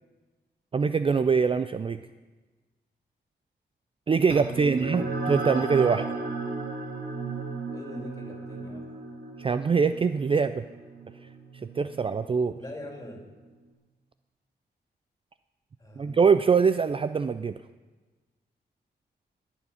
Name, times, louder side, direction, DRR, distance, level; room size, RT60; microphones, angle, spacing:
voice 1, 0.7-2.0 4.1-6.1 9.4-10.6 11.8-12.6 16.0-17.5, right 5 dB, 30° right, 11 dB, 0.4 m, -23 dB
sound 1, 4.3-13.1, right 3 dB, 60° right, 3.0 m, -35 dB
voice 2, 4.4-5.1 7.7-8.9 12.5-13.2 15.8-16.2, left 1 dB, 20° left, 1 dB, 3.0 m, -43 dB
20.0 x 7.1 x 5.6 m, 1.3 s
wide cardioid pair, 105°, 18 cm